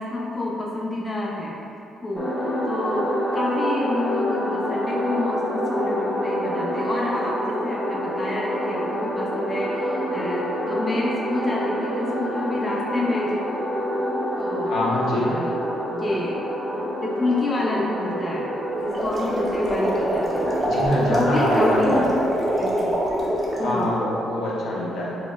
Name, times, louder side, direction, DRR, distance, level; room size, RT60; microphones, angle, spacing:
voice 1, 0.0-1.6 2.0-13.4 14.4-14.7 15.1-15.7 15.9-16.4 16.8-18.5 18.8-20.5 20.9-22.2 22.6-23.2 23.6-24.0, left 2 dB, 25° left, -4 dB, 0.5 m, -28 dB
sound 1, 2.2-20.7, equal, 10° left, 0.8 m, -27 dB
voice 2, 14.7-15.3 20.6-22.0 23.6-25.1, left 1 dB, 75° left, -5 dB, 0.6 m, -24 dB
sound 2, 18.8-23.7, equal, 25° right, 0.7 m, -24 dB
4.8 x 2.0 x 2.2 m, 2.7 s
cardioid pair, 90°, 0 cm